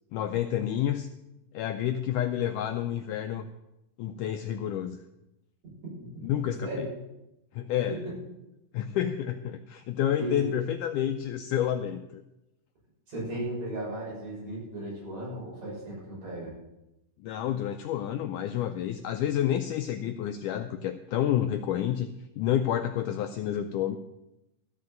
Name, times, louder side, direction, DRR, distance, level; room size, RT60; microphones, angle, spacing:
voice 1, 0.1-1.1 1.5-3.5 4.0-5.0 6.2-6.9 7.5-8.0 8.7-12.2 17.2-22.1 22.4-24.0, left 10 dB, 90° left, 7 dB, 1.8 m, -29 dB
voice 2, 6.0-6.9 7.9-8.1 10.2-10.5 13.1-16.5, right 1 dB, 50° right, -5 dB, 7.3 m, -36 dB
14.0 x 6.7 x 7.8 m, 0.91 s
omnidirectional pair, 4.2 m